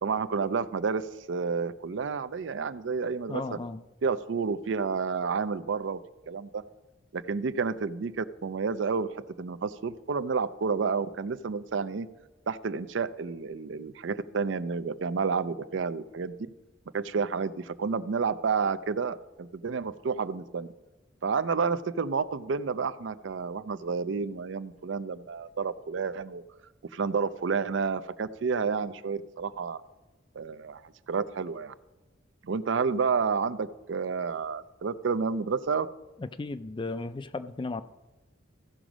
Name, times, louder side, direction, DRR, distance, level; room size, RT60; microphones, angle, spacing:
voice 1, 0.0-3.6 4.0-6.0 6.3-6.6 7.1-12.1 12.5-16.3 16.9-20.7 21.2-26.4 26.9-29.8 30.4-30.8 31.1-31.7 32.4-35.9, right 5 dB, 65° right, 14 dB, 0.4 m, -30 dB
voice 2, 3.3-3.9 36.2-37.8, left 3 dB, 25° left, 12 dB, 0.4 m, -35 dB
15.0 x 5.1 x 6.1 m, 1.1 s
head